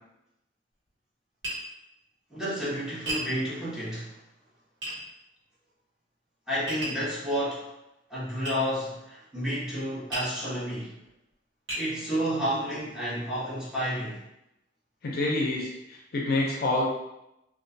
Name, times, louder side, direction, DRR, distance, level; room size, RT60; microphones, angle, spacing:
Tap, 1.4-1.6 3.1-3.3 4.8-5.0 6.7-7.0 8.4-8.6 10.1-10.3 11.0-11.1 11.7-11.9, right 1 dB, 65° right, 1.2 m, -33 dB
voice 1, 2.3-4.2 6.5-7.7 8.1-10.9 11.8-14.2, equal, 5° right, -10 dB, 0.7 m, -31 dB
voice 2, 15.0-16.8, left 2 dB, 50° left, -3 dB, 0.4 m, -27 dB
2.3 x 2.2 x 2.5 m, 0.88 s
head